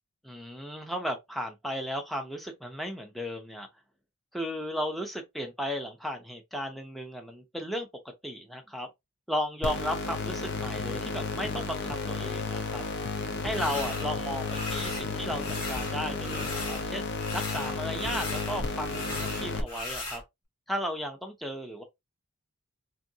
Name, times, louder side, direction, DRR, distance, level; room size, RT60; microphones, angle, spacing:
voice 1, 0.2-3.7 4.3-7.9 8.2-8.9 9.3-12.8 13.4-17.0 17.3-20.2 20.7-21.8, equal, ahead, 0.5 m, -35 dB
sound 1, 9.6-19.6, left 3 dB, 50° left, 0.5 m, -33 dB
sound 2, 13.5-14.1 14.5-15.1 15.4-16.9 17.1-20.2, left 2 dB, 85° left, 1.4 m, -37 dB
2.6 x 2.4 x 2.7 m
head